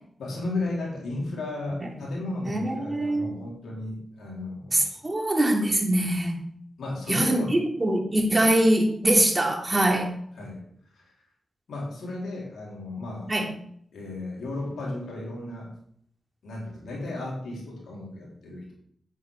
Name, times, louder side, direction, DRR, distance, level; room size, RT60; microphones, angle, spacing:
voice 1, 0.2-4.9 6.8-7.6 10.3-10.7 10.9-11.1 11.7-13.4 13.9-15.7 16.4-18.7, left 2 dB, 80° left, -3 dB, 4.1 m, -34 dB
voice 2, 2.4-3.3 4.7-6.4 7.1-10.1 13.3-13.5, right 1 dB, 30° right, 2 dB, 3.1 m, -23 dB
8.9 x 8.8 x 5.0 m, 0.66 s
cardioid pair, 45°, 0 cm